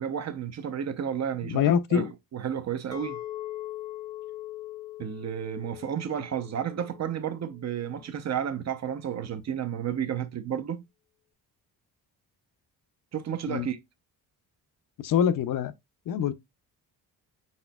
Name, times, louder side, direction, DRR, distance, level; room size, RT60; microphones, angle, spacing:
voice 1, 0.0-1.6 1.9-3.2 5.0-10.8 13.1-13.8, right 9 dB, 45° right, 0.6 m, -32 dB
voice 2, 1.5-2.1 13.5-13.7 15.0-15.7 16.1-16.3, left 8 dB, 60° left, 0.5 m, -24 dB
Chink clink, 2.9-8.1, left 14 dB, 10° left, 0.5 m, -41 dB
5.0 x 4.3 x 2.2 m
cardioid pair, 115°, 38 cm